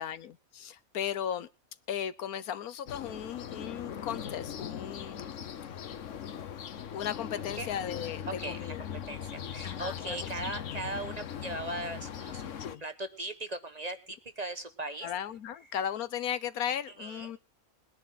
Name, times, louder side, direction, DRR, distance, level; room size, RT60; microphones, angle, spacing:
voice 1, 0.0-1.5 1.9-5.4 6.9-8.9 9.6-10.9 12.6-12.8 15.0-17.4, left 9 dB, 85° left, 15 dB, 1.3 m, -36 dB
sound 1, 2.9-12.8, left 8 dB, 60° left, 1.2 m, -40 dB
voice 2, 8.3-8.7 9.1-12.5 12.8-15.1 17.0-17.3, right 2 dB, 30° right, 9 dB, 1.2 m, -38 dB
20.5 x 10.5 x 4.0 m, 0.31 s
omnidirectional pair, 1.5 m